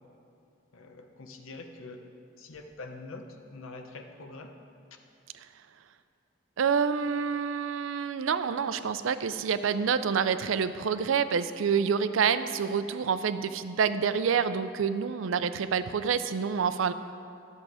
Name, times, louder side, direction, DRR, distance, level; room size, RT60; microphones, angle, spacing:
voice 1, 0.7-2.0 2.4-4.5, left 3 dB, 90° left, 5 dB, 0.8 m, -44 dB
voice 2, 6.6-16.9, right 6 dB, 80° right, 12 dB, 0.4 m, -27 dB
11.5 x 7.4 x 4.9 m, 2.5 s
head